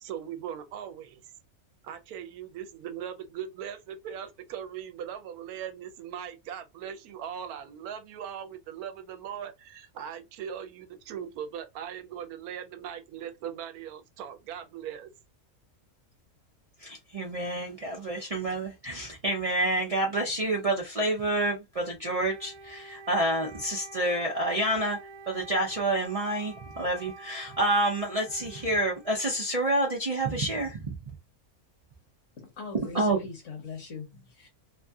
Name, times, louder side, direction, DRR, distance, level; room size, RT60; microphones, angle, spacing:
voice 1, 0.0-1.2 1.8-15.1, right 9 dB, 85° right, 1.1 m, -39 dB
voice 2, 16.8-25.0 25.3-30.9 32.9-33.2, right 1 dB, 65° right, 0.3 m, -28 dB
Wind instrument woodwind instrument, 22.0-29.7, right 3 dB, 20° right, 0.8 m, -48 dB
voice 3, 32.3-34.5, left 5 dB, 60° left, 1.2 m, -41 dB
2.9 x 2.6 x 2.3 m
omnidirectional pair, 1.5 m